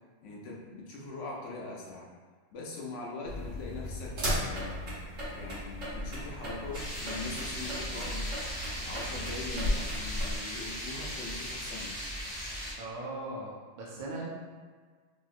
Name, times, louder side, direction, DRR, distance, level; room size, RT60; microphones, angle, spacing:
voice 1, 0.2-2.1 2.5-4.9 5.3-8.3 8.8-12.0, left 2 dB, 75° left, -3 dB, 0.9 m, -42 dB
sound 1, 3.2-10.4, equal, 85° right, 1.3 m, -36 dB
sound 2, 6.7-12.7, equal, 10° left, 0.5 m, -38 dB
voice 2, 12.8-14.3, right 2 dB, 60° right, -4 dB, 0.5 m, -39 dB
2.8 x 2.8 x 2.4 m, 1.5 s
omnidirectional pair, 1.3 m